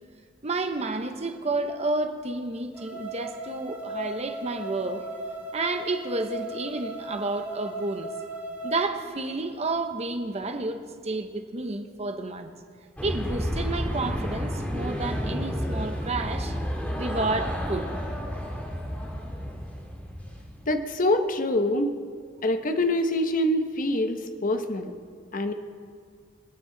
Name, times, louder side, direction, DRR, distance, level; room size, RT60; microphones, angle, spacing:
voice 1, 0.4-5.1 5.5-8.1 8.6-12.5 13.0-16.5 17.0-17.9, right 2 dB, 35° right, 6 dB, 0.9 m, -30 dB
sound 1, 2.7-8.7, right 1 dB, 10° right, 1.7 m, -37 dB
sound 2, 13.0-20.6, equal, 10° left, 1.9 m, -31 dB
voice 2, 20.7-21.9 22.4-24.9 25.3-25.5, left 1 dB, 45° left, 7 dB, 0.9 m, -25 dB
26.0 x 9.2 x 3.9 m, 2.1 s
head